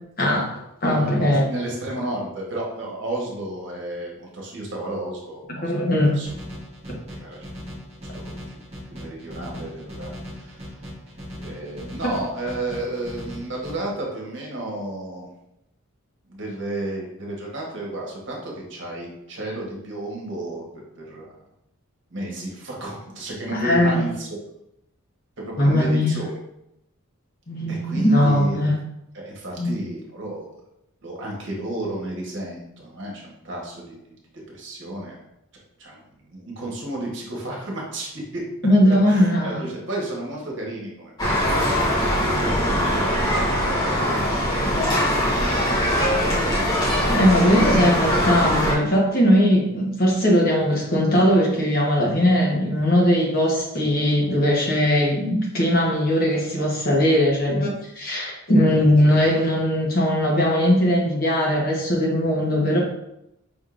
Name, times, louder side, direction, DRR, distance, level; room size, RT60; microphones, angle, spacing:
voice 1, 0.2-0.5 0.8-1.5 5.6-6.2 6.9-7.0 23.5-24.0 25.6-26.2 27.5-28.7 29.6-29.7 38.6-39.6 47.1-62.8, equal, 40° left, -2 dB, 1.1 m, -19 dB
voice 2, 0.9-6.3 7.2-7.5 8.1-8.6 8.9-10.9 11.4-15.3 16.3-20.6 21.0-21.4 22.1-24.3 25.5-26.3 27.7-28.7 29.1-30.5 31.0-34.1 34.5-35.2 35.8-36.0 36.3-38.4 38.8-41.4 41.7-43.1 43.8-45.2, right 1 dB, 55° right, -2 dB, 1.2 m, -32 dB
sound 1, 6.3-13.7, equal, 30° right, 1.1 m, -38 dB
sound 2, 41.2-48.7, equal, 20° left, 1.0 m, -21 dB
5.2 x 3.6 x 2.5 m, 0.83 s
head